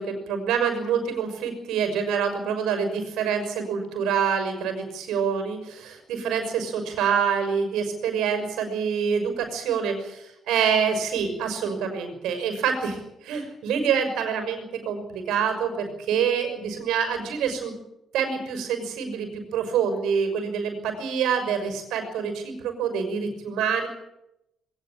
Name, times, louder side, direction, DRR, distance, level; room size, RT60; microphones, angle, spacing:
voice 1, 0.0-17.8 18.1-23.9, right 7 dB, 90° right, 7 dB, 6.0 m, -26 dB
21.0 x 19.5 x 8.9 m, 0.86 s
cardioid pair, 90°, 0 cm